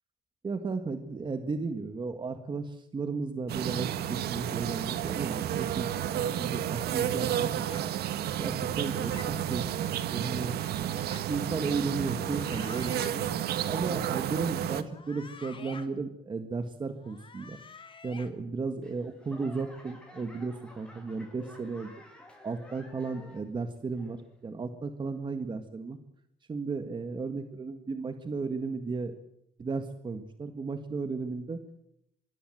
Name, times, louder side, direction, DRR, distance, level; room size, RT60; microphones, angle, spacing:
voice 1, 0.4-7.6 8.4-9.7 10.1-10.6 10.9-13.2 13.7-17.6 18.0-21.9 22.4-26.0 26.5-29.1 29.6-31.6, right 4 dB, 30° right, 8 dB, 1.7 m, -34 dB
sound 1, 3.5-14.8, right 10 dB, 70° right, 1.8 m, -31 dB
sound 2, 7.2-7.8 8.7-9.3 10.4-11.2 12.2-13.1 14.8-15.9 17.0-18.3, left 5 dB, 30° left, 3.1 m, -49 dB
Laughter / Clapping / Crowd, 18.8-23.6 23.9-24.5 25.0-25.1, left 1 dB, 5° left, 7.2 m, -52 dB
25.5 x 22.0 x 7.9 m, 0.79 s
cardioid pair, 110°, 17 cm